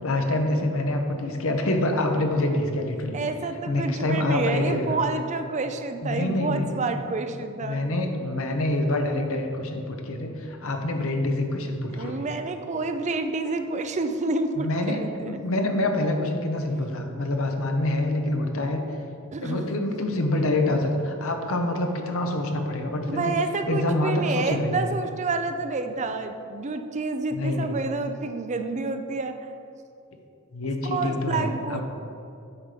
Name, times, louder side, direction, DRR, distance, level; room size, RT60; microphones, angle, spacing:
voice 1, 0.0-3.2 3.7-5.0 6.0-6.9 7.6-12.3 14.6-18.8 19.4-23.4 23.7-24.9 27.3-27.8 30.5-31.8, left 1 dB, 65° left, 4 dB, 1.0 m, -26 dB
voice 2, 3.1-7.8 11.9-15.4 19.3-19.6 23.1-29.4 30.8-31.8, right 3 dB, 30° right, 8 dB, 0.5 m, -29 dB
8.7 x 6.0 x 5.1 m, 2.6 s
head